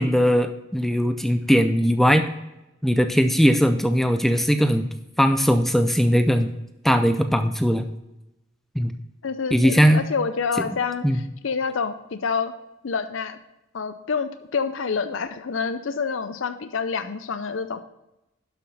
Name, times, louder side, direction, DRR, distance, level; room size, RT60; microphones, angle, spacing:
voice 1, 0.0-2.3 2.8-6.5 6.8-7.8 8.8-8.9 9.5-10.0 11.0-11.2, equal, ahead, 8 dB, 0.4 m, -19 dB
voice 2, 9.2-12.5 12.8-13.4 13.7-17.8, left 5 dB, 75° left, 10 dB, 0.6 m, -27 dB
11.5 x 5.9 x 4.2 m, 0.93 s
head